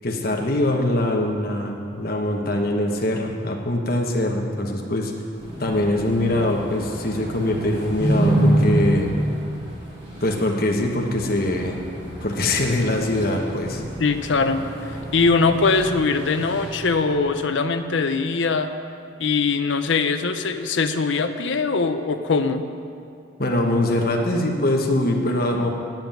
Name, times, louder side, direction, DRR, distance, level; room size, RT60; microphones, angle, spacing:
voice 1, 0.0-5.1 5.6-9.1 10.2-11.8 12.2-13.8 23.4-25.7, left 1 dB, 50° left, 2 dB, 1.2 m, -23 dB
sound 1, 5.4-17.0, right 1 dB, 30° right, 2.8 m, -27 dB
voice 2, 14.0-14.6 15.1-18.7 19.2-22.6, left 4 dB, 70° left, 8 dB, 0.6 m, -21 dB
9.0 x 7.7 x 9.0 m, 2.6 s
head